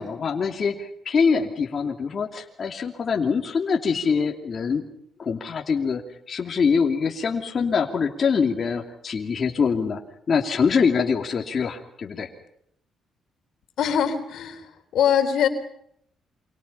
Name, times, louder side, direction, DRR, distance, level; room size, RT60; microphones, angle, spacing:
voice 1, 0.0-4.9 5.2-6.0 6.3-10.0 10.3-12.3, left 5 dB, 45° left, 1 dB, 2.9 m, -24 dB
voice 2, 13.8-15.5, left 8 dB, 75° left, 7 dB, 3.7 m, -23 dB
28.5 x 26.0 x 5.7 m, 0.71 s
cardioid pair, 90°, 0 cm